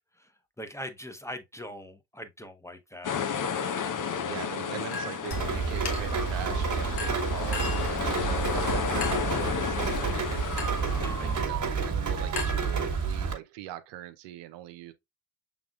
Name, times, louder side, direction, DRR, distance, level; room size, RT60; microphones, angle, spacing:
voice 1, 0.0-3.2 11.0-11.4, equal, 5° left, 0.9 m, -42 dB
sound 1, 3.0-11.4, left 7 dB, 45° left, 0.9 m, -32 dB
voice 2, 4.2-10.5 11.2-14.9, right 13 dB, 75° right, 0.6 m, -41 dB
Chink clink, 4.9-5.4 5.9-6.3 7.0-8.0 9.0-9.4 10.6-10.9 12.4-13.2, left 4 dB, 60° left, 1.5 m, -37 dB
Rain, 5.3-13.3, right 5 dB, 45° right, 1.4 m, -29 dB
6.0 x 3.6 x 2.3 m
hypercardioid pair, 45°, 43 cm